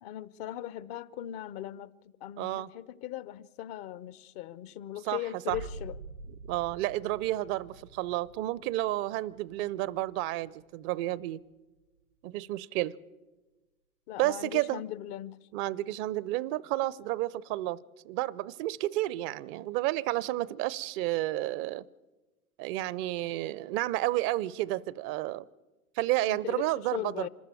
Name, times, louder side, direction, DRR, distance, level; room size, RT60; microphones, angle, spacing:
voice 1, 0.0-6.0 14.1-15.4 26.2-27.3, left 12 dB, 45° left, 0.7 m, -39 dB
voice 2, 2.4-2.7 5.0-5.2 5.5-5.6 6.5-11.4 12.2-12.9 14.2-14.8 15.5-17.8 18.1-21.8 22.6-25.4 26.0-27.3, right 16 dB, 45° right, 0.6 m, -31 dB
sound 1, 5.5-10.9 11.4-12.0, right 3 dB, 90° right, 2.0 m, -48 dB
25.5 x 13.5 x 8.9 m
figure-of-eight pair, 75°, 43 cm